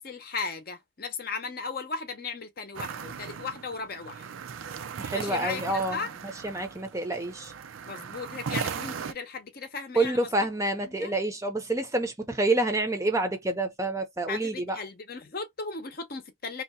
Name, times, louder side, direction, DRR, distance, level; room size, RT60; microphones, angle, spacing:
voice 1, 0.0-4.3 5.1-5.6 5.9-6.1 7.8-10.5 10.9-11.2 14.3-16.6, left 4 dB, 50° left, 0.7 m, -36 dB
sound 1, 2.7-9.1, right 6 dB, 85° right, 0.5 m, -37 dB
voice 2, 5.0-6.0 6.4-7.5 10.0-14.8, right 2 dB, 15° right, 0.6 m, -28 dB
2.8 x 2.2 x 4.1 m
head